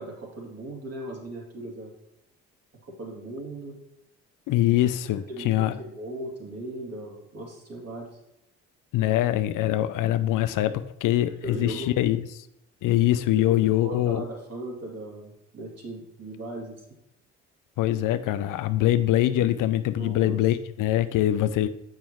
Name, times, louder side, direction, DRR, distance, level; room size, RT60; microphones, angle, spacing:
voice 1, 0.0-1.9 2.9-3.8 5.3-8.1 11.4-11.9 13.0-16.8 19.9-20.4, right 1 dB, 45° right, -1 dB, 2.4 m, -38 dB
voice 2, 4.5-5.7 8.9-12.5 12.8-14.2 17.8-21.7, left 13 dB, 60° left, 12 dB, 0.5 m, -23 dB
7.0 x 5.4 x 3.0 m, 0.82 s
hypercardioid pair, 55°, 36 cm